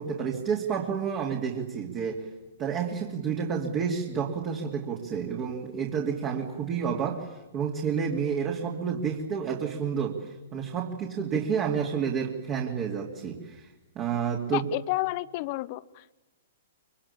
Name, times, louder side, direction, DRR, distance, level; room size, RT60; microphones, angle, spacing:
voice 1, 0.0-2.2 2.6-13.7 13.9-14.6, right 7 dB, 30° right, 2.9 m, -30 dB
voice 2, 14.5-16.1, left 19 dB, 40° left, 0.8 m, -31 dB
25.0 x 24.5 x 8.7 m
figure-of-eight pair, 110°, 0 cm